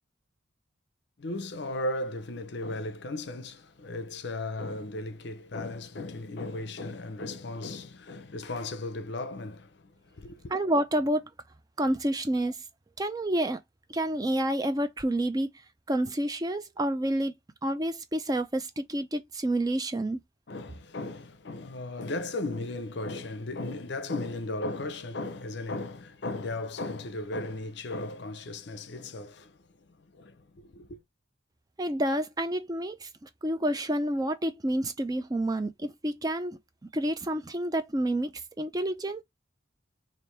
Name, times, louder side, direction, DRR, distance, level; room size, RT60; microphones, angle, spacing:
voice 1, 1.2-9.8 10.1-10.5 20.5-31.0, left 2 dB, 60° left, 0.6 m, -36 dB
voice 2, 10.5-11.3 11.8-12.6 13.0-13.6 13.9-15.5 15.9-17.3 17.6-20.2 31.8-36.6 36.9-38.3 38.6-39.2, right 1 dB, 20° right, 0.4 m, -29 dB
3.4 x 2.5 x 4.4 m
head